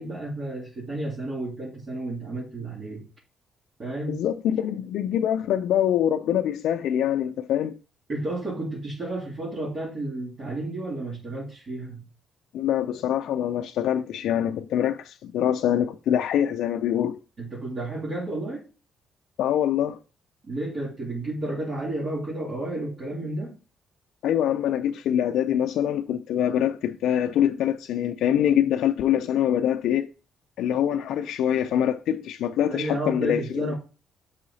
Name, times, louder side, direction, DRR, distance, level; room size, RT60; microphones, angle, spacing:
voice 1, 0.0-3.0 3.8-4.2 8.1-12.0 17.4-18.7 20.4-23.6 32.7-33.7, right 2 dB, 45° right, 2.4 m, -32 dB
voice 2, 4.1-7.7 12.5-17.2 19.4-20.0 24.2-30.1 30.6-33.7, left 10 dB, 80° left, 0.4 m, -24 dB
7.6 x 5.6 x 2.7 m
cardioid pair, 90°, 0 cm